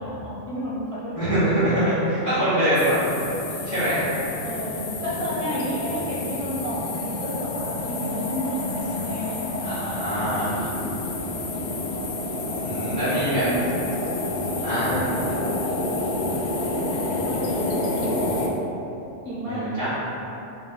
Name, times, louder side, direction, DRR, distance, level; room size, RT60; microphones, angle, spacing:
voice 1, 0.0-1.5 4.4-10.4 11.2-11.7 13.0-14.0 14.9-15.7 16.5-18.4 19.2-19.9, equal, 30° right, -7 dB, 0.7 m, -32 dB
voice 2, 1.2-3.1 3.6-4.1 9.6-10.6 12.6-13.4 14.6-15.0 19.5-19.9, right 1 dB, 15° left, -18 dB, 1.2 m, -24 dB
sound 1, 2.7-18.5, left 2 dB, 90° left, 0.4 m, -29 dB
3.1 x 3.1 x 3.8 m, 2.9 s
omnidirectional pair, 1.3 m